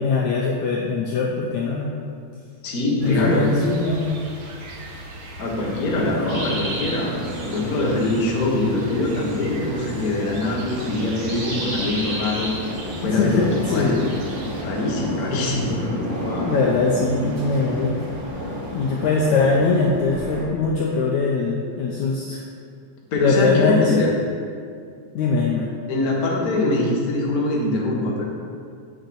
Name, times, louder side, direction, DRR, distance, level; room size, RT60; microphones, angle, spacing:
voice 1, 0.0-1.9 3.0-4.3 13.0-14.0 16.5-18.0 18.7-22.4 23.2-24.0 25.2-25.7, left 4 dB, 75° left, -2 dB, 1.7 m, -21 dB
voice 2, 2.6-3.5 5.4-7.1 7.4-12.5 13.0-14.0 14.6-16.5 17.0-17.4 23.1-24.1 25.9-28.2, left 2 dB, 45° left, -3 dB, 1.1 m, -23 dB
sound 1, 3.0-14.6, right 1 dB, 90° right, 1.1 m, -39 dB
sound 2, 5.6-20.5, equal, 65° right, 3.6 m, -32 dB
sound 3, 6.3-15.7, right 1 dB, 45° right, 2.9 m, -36 dB
8.0 x 6.6 x 6.3 m, 2.3 s
omnidirectional pair, 4.1 m